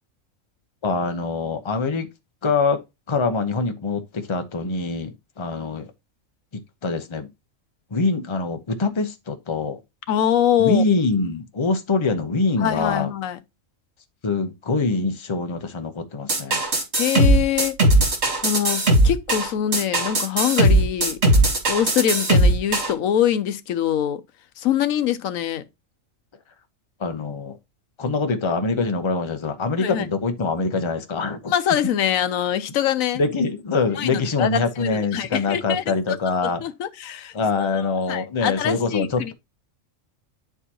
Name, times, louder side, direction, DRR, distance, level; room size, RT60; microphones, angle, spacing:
voice 1, 0.8-2.1 2.4-2.8 3.1-5.9 6.5-7.3 7.9-9.8 10.6-13.1 14.2-16.6 27.0-27.6 28.0-31.5 33.1-36.6 37.3-39.3, left 3 dB, 25° left, 0.7 m, -24 dB
voice 2, 10.1-10.8 12.6-13.4 17.0-17.7 18.4-21.2 21.7-24.2 24.6-25.6 29.8-30.1 31.5-33.2 34.0-36.2 36.4-39.3, left 10 dB, 85° left, 1.1 m, -24 dB
sound 1, 16.3-22.9, right 1 dB, 55° right, 2.3 m, -18 dB
9.7 x 4.6 x 2.9 m
omnidirectional pair, 1.4 m